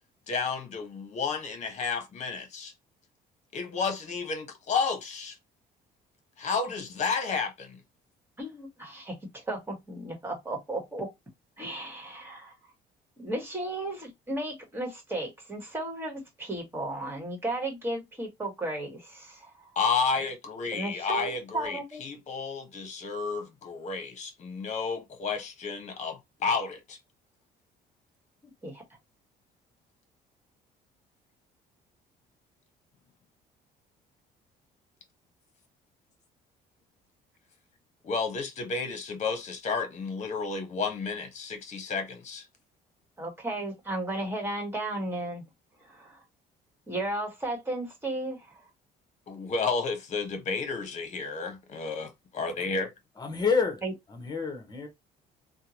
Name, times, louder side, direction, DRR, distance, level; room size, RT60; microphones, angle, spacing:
voice 1, 0.3-2.7 3.5-5.4 6.4-7.8 19.7-27.0 38.0-42.4 49.3-52.9, left 4 dB, 45° left, 1.1 m, -31 dB
voice 2, 8.4-11.1 11.6-12.5 13.2-19.7 20.7-22.1 28.6-28.8 43.2-45.4 45.8-46.2 46.9-48.5 53.8-53.9, right 1 dB, 15° right, 1.6 m, -34 dB
voice 3, 53.2-53.8 54.1-54.9, left 5 dB, 25° left, 1.1 m, -28 dB
3.5 x 2.2 x 2.9 m
cardioid pair, 110°, 17 cm